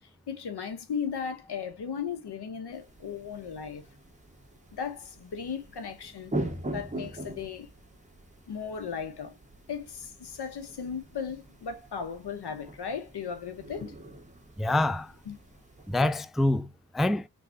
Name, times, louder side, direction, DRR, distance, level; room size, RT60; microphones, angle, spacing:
voice 1, 0.3-3.8 4.7-6.4 6.7-7.7 8.5-9.4 9.7-14.0 15.3-15.4, left 6 dB, 85° left, 1.0 m, -36 dB
sound 1, 2.7-16.1, right 1 dB, 20° right, 1.5 m, -42 dB
voice 2, 14.6-15.1 15.9-17.3, left 2 dB, ahead, 0.3 m, -26 dB
3.9 x 3.5 x 2.8 m
cardioid pair, 45°, 39 cm